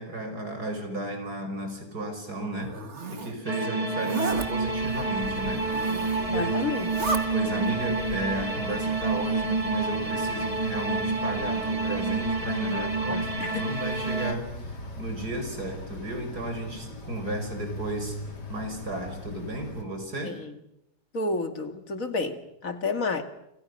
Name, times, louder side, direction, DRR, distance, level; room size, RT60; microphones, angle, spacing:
voice 1, 0.0-2.8 3.1-6.6 7.3-18.2 18.5-20.4, right 1 dB, 70° right, 6 dB, 6.2 m, -34 dB
Zipper (clothing), 2.6-3.3 4.0-4.5 5.6-6.3 6.7-7.2, right 3 dB, 45° right, 2.3 m, -33 dB
sound 1, 3.5-14.3, right 4 dB, 20° right, 1.9 m, -29 dB
sound 2, 4.6-19.8, left 1 dB, 85° left, 3.9 m, -40 dB
voice 2, 6.2-6.9 12.6-13.7 20.2-20.5 21.1-23.2, left 3 dB, 55° left, 8 dB, 2.5 m, -31 dB
29.0 x 27.0 x 6.7 m, 0.85 s
omnidirectional pair, 1.7 m